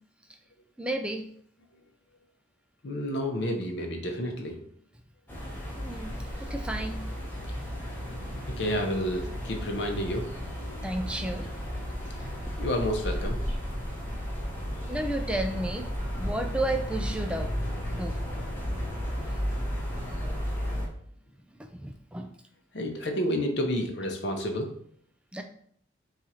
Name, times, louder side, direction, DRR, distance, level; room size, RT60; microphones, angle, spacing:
voice 1, 0.8-1.3 5.8-6.1 6.4-7.0 10.8-11.5 12.2-12.5 14.9-15.9 16.2-17.5 17.9-18.2 21.6-22.3 25.3-25.4, right 1 dB, 5° right, 5 dB, 0.3 m, -32 dB
voice 2, 2.8-4.6 8.4-10.2 12.6-13.4 22.7-24.7, equal, 60° left, 3 dB, 0.8 m, -30 dB
sound 1, 5.3-20.9, equal, 10° left, 0.8 m, -33 dB
4.5 x 2.4 x 4.2 m, 0.62 s
head